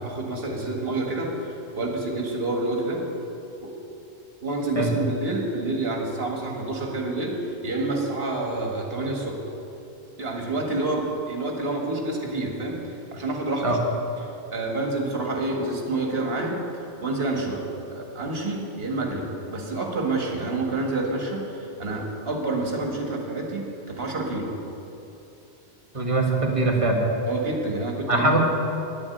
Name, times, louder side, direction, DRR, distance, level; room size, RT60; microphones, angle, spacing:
voice 1, 0.0-3.0 3.6-3.7 4.4-9.4 10.2-13.8 14.5-16.6 17.0-17.6 17.9-24.5 27.3-28.3, right 2 dB, 60° right, 0 dB, 1.9 m, -28 dB
voice 2, 25.9-27.0 28.1-28.4, right 2 dB, 30° right, -1 dB, 1.6 m, -22 dB
10.5 x 7.2 x 9.2 m, 2.9 s
omnidirectional pair, 1.2 m